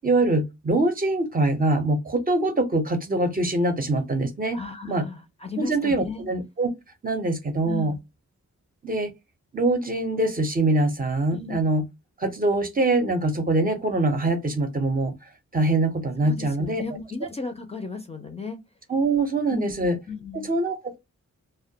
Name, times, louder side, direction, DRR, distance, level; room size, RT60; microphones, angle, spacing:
voice 1, 0.0-4.6 4.9-5.1 5.6-6.7 7.0-7.9 8.8-9.1 9.5-11.8 12.2-15.1 15.5-16.8 18.9-20.0 20.4-21.0, right 2 dB, 30° right, 0.5 m, -23 dB
voice 2, 4.5-6.3 7.6-8.0 11.3-11.7 16.2-18.6 19.5-20.5, left 4 dB, 20° left, 0.4 m, -35 dB
2.2 x 2.1 x 2.6 m
wide cardioid pair, 125°, 29 cm